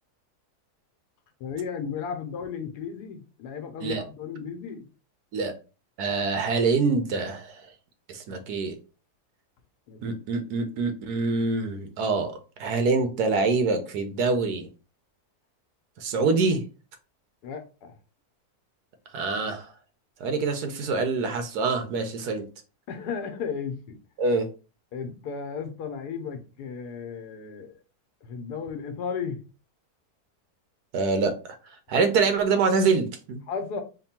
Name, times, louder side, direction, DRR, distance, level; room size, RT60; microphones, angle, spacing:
voice 1, 1.4-4.9 9.9-10.0 17.4-17.9 22.9-23.8 24.9-27.8 28.2-29.4 33.5-33.8, left 6 dB, 85° left, 1.3 m, -34 dB
voice 2, 6.0-7.7 8.1-8.7 10.0-12.3 12.6-14.7 16.0-16.6 19.1-19.7 20.2-22.4 24.2-24.5 30.9-31.3 31.9-33.4, right 4 dB, 80° right, 1.3 m, -25 dB
3.5 x 2.2 x 4.1 m
omnidirectional pair, 1.7 m